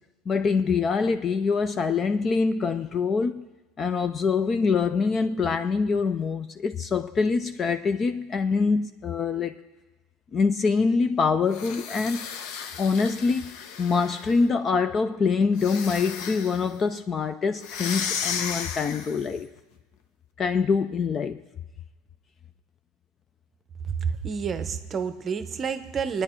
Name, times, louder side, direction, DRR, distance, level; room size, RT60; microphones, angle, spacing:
voice 1, 0.3-3.5 3.8-9.6 10.3-12.3 12.8-19.5 20.4-21.4, left 5 dB, 20° left, 0.3 m, -25 dB
sound 1, 11.5-14.5 15.5-16.7 17.6-19.3, left 7 dB, 60° left, 0.9 m, -34 dB
voice 2, 24.2-26.2, right 6 dB, 20° right, 0.7 m, -29 dB
24.0 x 9.7 x 4.4 m
cardioid pair, 170°, 0 cm